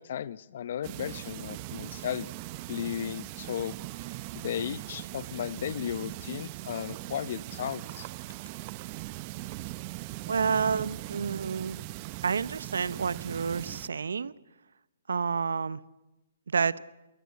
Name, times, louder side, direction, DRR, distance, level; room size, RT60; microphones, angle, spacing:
voice 1, 0.0-2.3 2.7-3.7 4.3-8.1, left 9 dB, 55° left, 18 dB, 0.8 m, -35 dB
sound 1, 0.8-13.9, right 18 dB, 35° right, 0.7 m, -40 dB
voice 2, 10.3-11.8 12.2-14.3 15.1-15.8 16.5-16.8, right 6 dB, 80° right, 19 dB, 0.8 m, -29 dB
21.5 x 18.5 x 8.3 m, 1.0 s
hypercardioid pair, 145°, 0 cm